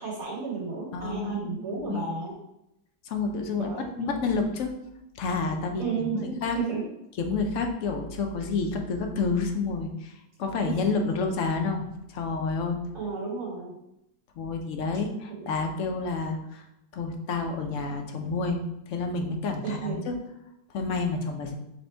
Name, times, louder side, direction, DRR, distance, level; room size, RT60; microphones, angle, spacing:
voice 1, 0.0-2.4 3.6-4.2 5.8-6.8 10.7-10.8 12.9-13.8 15.3-15.5 19.6-20.0, right 5 dB, 55° right, -6 dB, 1.6 m, -33 dB
voice 2, 0.9-2.1 3.1-4.7 5.2-6.6 7.2-11.9 12.1-12.8 14.4-16.6 16.9-18.6 18.9-20.1 20.7-21.6, left 4 dB, 65° left, 4 dB, 0.8 m, -29 dB
4.2 x 2.6 x 4.3 m, 0.86 s
omnidirectional pair, 1.7 m